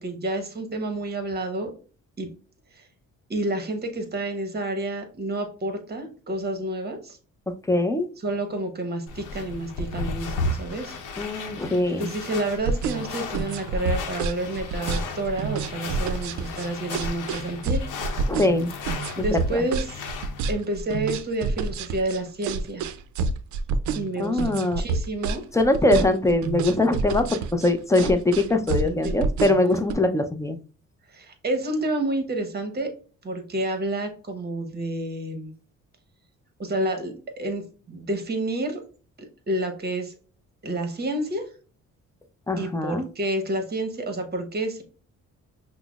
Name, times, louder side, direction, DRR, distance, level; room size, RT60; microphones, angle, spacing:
voice 1, 0.0-1.7 2.2-2.3 2.8-2.9 3.3-7.2 8.2-11.0 11.9-17.8 19.1-20.0 20.5-22.8 23.9-25.4 28.8-29.1 31.1-32.9 33.2-35.5 36.6-38.8 39.5-40.1 40.6-41.4 42.6-44.8, right 1 dB, 35° right, 6 dB, 1.0 m, -29 dB
voice 2, 7.7-8.1 11.2-12.1 18.3-18.7 19.3-19.6 24.2-24.8 25.5-30.6 42.5-43.0, left 2 dB, 10° left, 7 dB, 0.5 m, -22 dB
sound 1, 9.1-20.6, left 3 dB, 85° left, 0.8 m, -35 dB
sound 2, 12.5-29.9, right 4 dB, 70° right, 0.5 m, -28 dB
5.7 x 2.1 x 2.3 m, 0.39 s
cardioid pair, 90°, 30 cm